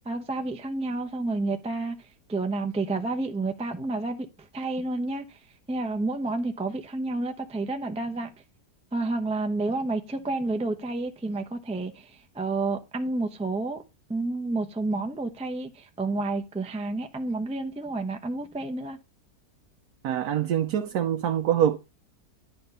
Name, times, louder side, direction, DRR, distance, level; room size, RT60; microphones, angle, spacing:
voice 1, 0.1-2.0 2.3-4.3 4.5-5.4 5.7-8.3 8.9-12.1 12.3-13.8 14.1-19.0, right 2 dB, 5° right, 0.6 m, -30 dB
voice 2, 20.0-21.8, right 10 dB, 75° right, 1.3 m, -24 dB
10.5 x 4.4 x 5.5 m
omnidirectional pair, 1.7 m